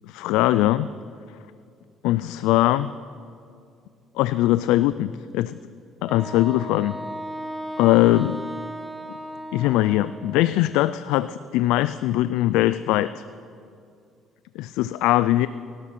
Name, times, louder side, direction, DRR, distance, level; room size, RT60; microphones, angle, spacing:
voice 1, 0.1-0.9 2.0-2.9 4.2-5.6 6.0-6.9 7.8-8.5 9.5-13.2 14.6-15.5, left 15 dB, 90° left, 15 dB, 0.3 m, -21 dB
Wind instrument woodwind instrument, 6.0-10.7, right 1 dB, 10° right, 1.1 m, -36 dB
17.5 x 12.5 x 5.8 m, 2.4 s
cardioid pair, 105°, 0 cm